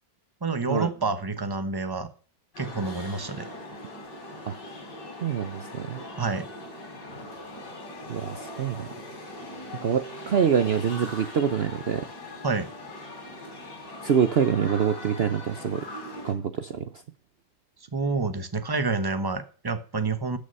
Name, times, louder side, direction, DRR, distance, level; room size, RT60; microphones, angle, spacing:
voice 1, 0.4-2.1 2.6-3.5 6.2-6.5 12.4-12.7 17.9-20.4, right 3 dB, 20° right, 10 dB, 0.7 m, -28 dB
sound 1, 2.5-16.3, left 1 dB, 75° left, 3.9 m, -41 dB
voice 2, 5.2-6.0 8.1-8.9 9.8-12.1 14.0-15.9 16.2-16.9, right 7 dB, 65° right, 10 dB, 0.6 m, -25 dB
13.0 x 6.7 x 5.4 m, 0.39 s
omnidirectional pair, 1.9 m